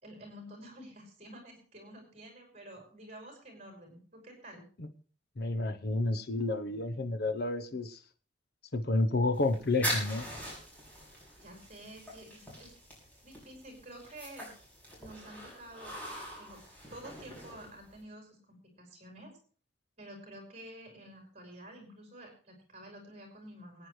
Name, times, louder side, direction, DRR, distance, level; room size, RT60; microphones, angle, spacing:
voice 1, 0.0-4.6 11.4-12.7 13.2-14.5 15.0-16.1 16.4-16.6 16.9-19.3 20.0-23.9, right 1 dB, 35° right, 2 dB, 5.3 m, -50 dB
voice 2, 5.4-8.0 8.7-10.3, left 2 dB, 60° left, 9 dB, 0.8 m, -30 dB
sound 1, 9.3-18.0, equal, 10° left, 6.2 m, -42 dB
23.0 x 9.6 x 3.2 m, 0.43 s
head